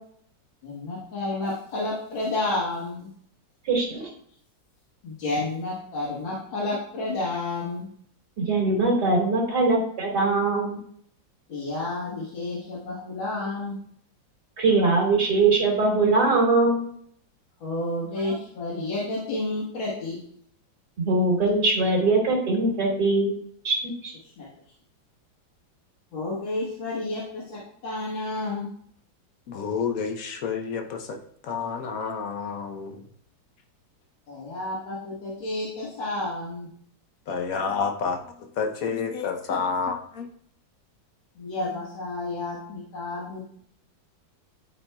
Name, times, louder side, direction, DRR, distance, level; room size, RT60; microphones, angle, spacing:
voice 1, 0.6-3.1 5.0-7.9 11.5-13.8 17.6-20.2 24.4-24.5 26.1-28.7 34.3-36.7 41.4-43.4, left 2 dB, 80° left, -6 dB, 2.2 m, -30 dB
voice 2, 3.7-4.1 8.5-10.8 14.6-16.9 18.2-18.4 21.0-23.4 23.6-23.7 24.0-24.1, right 3 dB, 55° right, -2 dB, 2.8 m, -22 dB
voice 3, 29.5-33.0 37.3-40.3, left 5 dB, 60° left, 5 dB, 1.0 m, -29 dB
11.5 x 4.3 x 2.2 m, 0.63 s
omnidirectional pair, 2.1 m